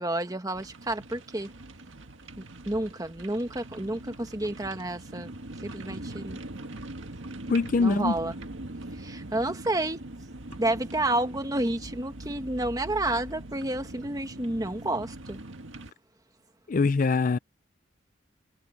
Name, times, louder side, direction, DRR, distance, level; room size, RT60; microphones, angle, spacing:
voice 1, 0.0-1.5 2.4-5.3 5.6-6.4 7.8-8.3 8.9-10.0 10.6-15.4, right 1 dB, 20° right, 1.4 m, -30 dB
sound 1, 0.5-15.9, right 2 dB, 85° right, 1.7 m, -42 dB
voice 2, 7.5-8.1 16.7-17.4, left 4 dB, 45° left, 0.4 m, -23 dB
head